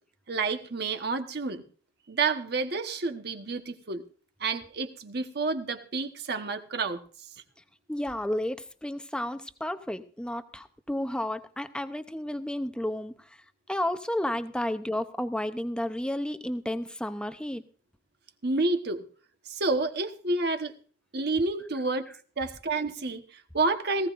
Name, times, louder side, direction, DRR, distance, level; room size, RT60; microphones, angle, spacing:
voice 1, 0.3-1.6 2.1-4.0 4.4-7.0 18.4-19.0 19.5-20.7 21.1-22.1 22.4-24.1, right 3 dB, 60° right, 7 dB, 1.2 m, -29 dB
voice 2, 7.9-17.6, left 1 dB, 5° left, 10 dB, 0.7 m, -32 dB
18.5 x 16.0 x 2.5 m, 0.41 s
head